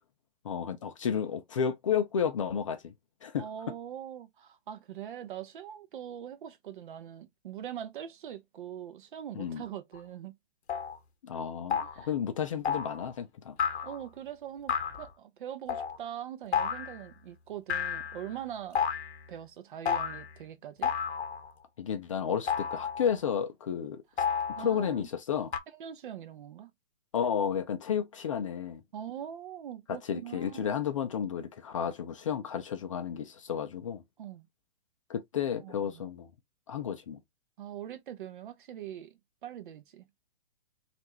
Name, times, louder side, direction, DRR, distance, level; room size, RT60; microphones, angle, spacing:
voice 1, 0.4-2.9 3.2-3.4 9.3-9.6 11.2-13.6 21.8-24.0 24.6-25.5 27.1-28.8 29.9-34.0 35.1-36.3 36.7-37.2, left 8 dB, 30° left, 0.4 m, -32 dB
voice 2, 3.4-10.4 11.7-12.1 13.8-18.8 19.3-20.9 24.6-25.1 25.7-26.7 28.9-30.7 34.2-34.5 35.6-36.1 37.6-40.1, right 10 dB, 50° right, 0.7 m, -42 dB
sound 1, 9.9-10.0 10.7-11.0 11.7-12.1 12.6-13.1 13.6-14.1 14.7-15.0 15.7-16.0 16.5-17.0 17.7-18.3 18.7-19.2 19.8-20.3 20.8-21.5 22.5-23.1 24.2-24.9 25.5-25.6, left 7 dB, 90° left, 0.8 m, -31 dB
3.2 x 2.5 x 2.9 m
hypercardioid pair, 150°, 32 cm